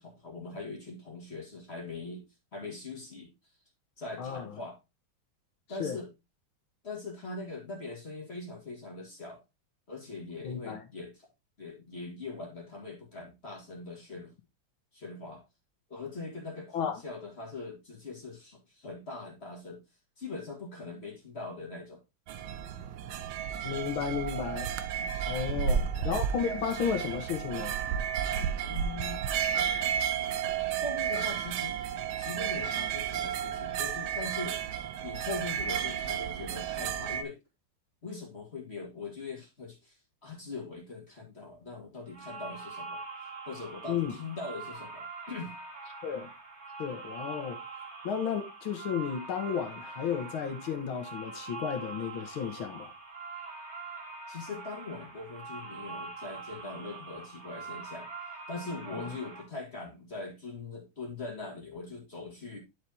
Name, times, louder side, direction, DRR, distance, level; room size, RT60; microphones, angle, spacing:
voice 1, 0.0-2.3 2.5-3.3 4.0-4.8 5.7-6.1 6.8-9.4 9.9-11.3 11.6-14.3 14.9-15.4 15.9-19.8 20.2-22.0 25.5-25.9 28.6-29.3 30.8-31.8 32.2-34.6 35.0-37.4 38.0-43.0 43.5-45.6 54.3-58.1 58.5-62.6, left 3 dB, 30° left, 2.1 m, -41 dB
voice 2, 10.4-10.8 16.7-17.0 23.6-24.7 25.3-27.8 43.9-44.1 46.0-46.3 46.8-47.6 48.0-52.9 58.9-59.2, left 7 dB, 80° left, 2.2 m, -33 dB
sound 1, 22.3-37.2, right 8 dB, 80° right, 1.5 m, -32 dB
sound 2, 42.1-59.4, right 4 dB, 35° right, 2.1 m, -43 dB
11.0 x 4.8 x 2.8 m
omnidirectional pair, 2.2 m